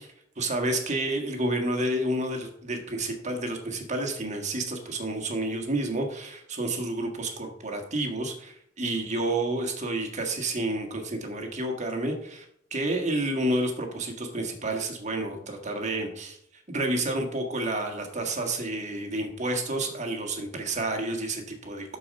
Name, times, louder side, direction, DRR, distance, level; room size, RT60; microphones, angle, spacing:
voice 1, 0.4-12.4 12.7-16.4 16.7-22.0, right 1 dB, 35° right, 3 dB, 1.6 m, -30 dB
12.0 x 4.8 x 5.3 m, 0.72 s
head